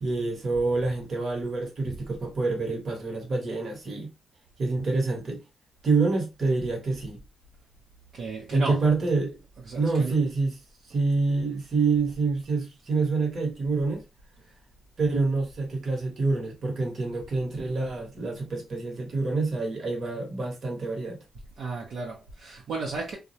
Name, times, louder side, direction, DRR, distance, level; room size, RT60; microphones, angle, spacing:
voice 1, 0.0-4.1 4.6-5.4 5.8-7.2 8.5-9.4 9.7-10.6 10.9-14.0 15.0-21.2, right 3 dB, 55° right, 1.0 m, -27 dB
voice 2, 8.1-8.8 9.7-10.1 21.6-23.2, right 3 dB, 75° right, 0.6 m, -33 dB
2.3 x 2.0 x 2.7 m
cardioid pair, 75°, 0 cm